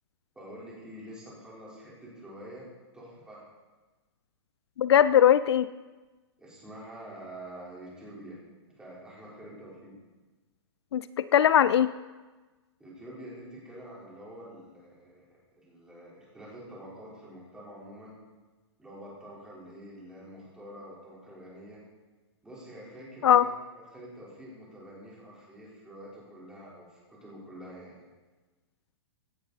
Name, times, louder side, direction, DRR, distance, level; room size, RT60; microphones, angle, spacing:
voice 1, 0.4-2.7 2.9-3.4 6.4-8.4 8.8-9.9 12.8-18.2 18.8-21.8 22.4-23.5 23.9-28.0, right 1 dB, 5° right, -6 dB, 4.0 m, -46 dB
voice 2, 4.8-5.7 10.9-11.9 23.2-23.5, left 10 dB, 70° left, 15 dB, 0.5 m, -20 dB
16.5 x 10.0 x 4.1 m, 1.2 s
hypercardioid pair, 155°, 14 cm